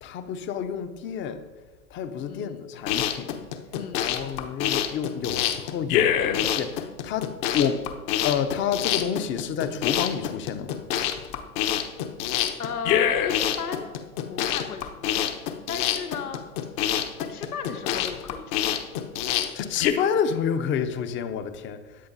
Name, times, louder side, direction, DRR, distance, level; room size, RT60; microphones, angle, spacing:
voice 1, 0.0-1.4 1.9-3.3 3.9-6.7 7.0-7.3 7.5-7.8 8.2-10.8 19.5-21.8, left 7 dB, 25° left, 11 dB, 0.8 m, -28 dB
voice 2, 2.3-2.6 3.7-4.1 12.6-13.9 14.3-15.3 15.7-16.4 17.2-18.8, left 6 dB, 75° left, 7 dB, 1.1 m, -35 dB
sound 1, 2.7-19.9, left 10 dB, 40° left, 1.1 m, -26 dB
16.5 x 10.5 x 2.7 m, 1.3 s
figure-of-eight pair, 100°, 44 cm